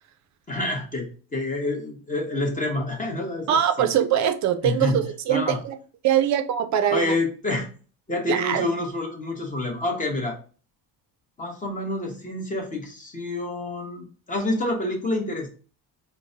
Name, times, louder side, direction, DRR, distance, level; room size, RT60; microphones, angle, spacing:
voice 1, 0.5-3.9 4.6-5.0 5.3-5.6 6.9-7.7 8.1-10.4 11.4-15.5, left 2 dB, 20° left, 1 dB, 0.8 m, -28 dB
voice 2, 3.5-5.7 6.0-7.1 8.3-8.6, right 10 dB, 45° right, 8 dB, 0.4 m, -22 dB
4.5 x 2.1 x 2.6 m, 0.38 s
cardioid pair, 155°, 43 cm